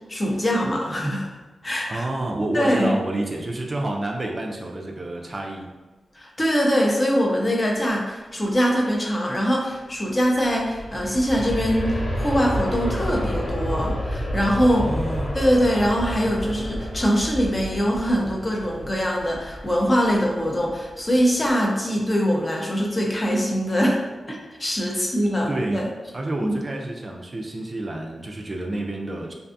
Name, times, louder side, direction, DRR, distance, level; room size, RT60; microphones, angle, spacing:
voice 1, 0.1-1.3 1.6-2.1 2.5-2.9 6.1-14.9 15.3-24.0 24.3-25.9 26.4-26.6, equal, 30° left, -1 dB, 0.6 m, -23 dB
voice 2, 1.9-5.7 12.8-13.1 14.8-15.3 24.9-25.1 25.5-25.8 26.1-29.3, right 1 dB, 40° right, 1 dB, 0.3 m, -29 dB
Aircraft, 10.2-21.0 21.5-21.6, equal, 80° left, 0.7 m, -30 dB
2.5 x 2.3 x 2.5 m, 1.2 s
cardioid pair, 60°, 0 cm